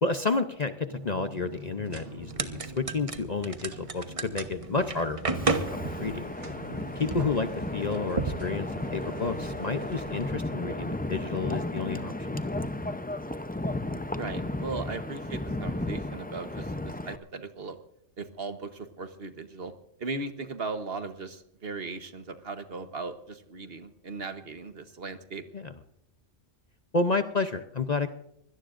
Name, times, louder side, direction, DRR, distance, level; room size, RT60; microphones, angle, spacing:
voice 1, 0.0-5.5 5.9-6.3 7.0-12.4 25.5-25.7 26.9-28.1, left 3 dB, 40° left, 8 dB, 0.7 m, -30 dB
sound 1, 0.9-7.9, right 2 dB, 70° right, 1.8 m, -45 dB
sound 2, 2.2-10.3, right 3 dB, 30° right, 1.0 m, -35 dB
Wind, 5.3-17.2, left 1 dB, 10° left, 0.4 m, -34 dB
voice 2, 14.1-17.8 18.2-19.7 20.0-25.4, right 3 dB, 55° right, 9 dB, 1.3 m, -38 dB
24.0 x 17.0 x 2.6 m, 0.78 s
omnidirectional pair, 1.3 m